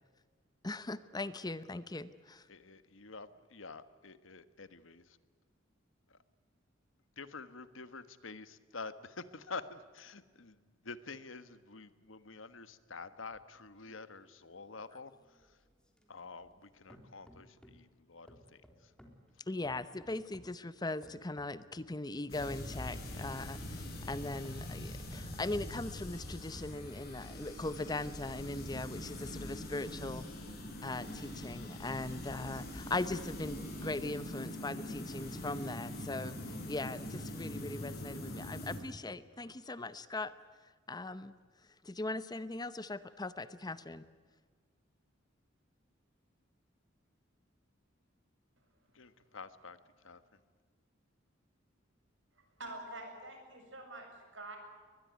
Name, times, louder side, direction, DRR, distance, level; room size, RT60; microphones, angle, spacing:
voice 1, 0.6-2.5 19.5-30.4 30.8-40.3 40.6-41.3 41.8-44.1, left 2 dB, 20° left, 14 dB, 0.8 m, -40 dB
voice 2, 2.5-5.2 6.1-6.2 7.2-10.6 10.8-15.6 16.1-18.9 48.9-49.8 50.0-50.2, left 4 dB, 80° left, 13 dB, 1.4 m, -48 dB
sound 1, 13.3-16.6 16.9-17.9 18.3-20.6 21.0-22.0 22.4-23.3 23.8-26.1 26.5-27.5 28.0-28.1, equal, 5° left, 3.5 m, -61 dB
sound 2, 22.3-38.8, left 1 dB, 50° left, 7.3 m, -43 dB
voice 3, 52.3-54.6, right 2 dB, 70° right, 4 dB, 7.3 m, -47 dB
22.5 x 21.0 x 9.4 m, 1.5 s
head